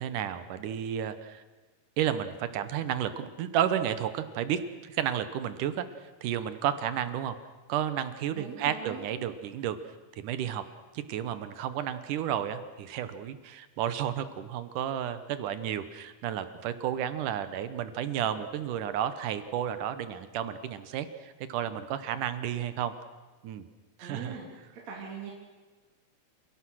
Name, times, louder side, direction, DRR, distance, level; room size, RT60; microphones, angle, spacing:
voice 1, 0.0-1.4 2.0-5.9 6.2-7.4 7.7-9.8 10.2-10.6 10.9-22.9 23.4-23.6 24.0-24.4, right 10 dB, 80° right, 12 dB, 2.6 m, -32 dB
voice 2, 8.3-9.1 24.0-24.4 24.8-25.3, right 6 dB, 55° right, -3 dB, 4.2 m, -40 dB
30.0 x 17.5 x 6.3 m, 1.3 s
omnidirectional pair, 3.7 m